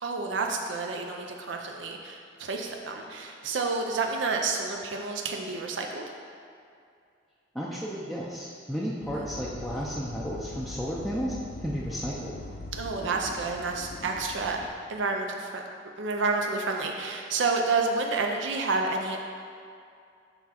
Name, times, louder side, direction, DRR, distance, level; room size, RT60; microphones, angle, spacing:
voice 1, 0.0-6.0 9.1-9.3 12.7-15.6 16.0-19.2, right 3 dB, 70° right, 1 dB, 0.6 m, -29 dB
voice 2, 7.5-12.4, equal, ahead, -6 dB, 0.5 m, -33 dB
sound 1, 9.0-14.7, left 2 dB, 50° left, 0.5 m, -41 dB
7.0 x 3.6 x 5.8 m, 2.4 s
head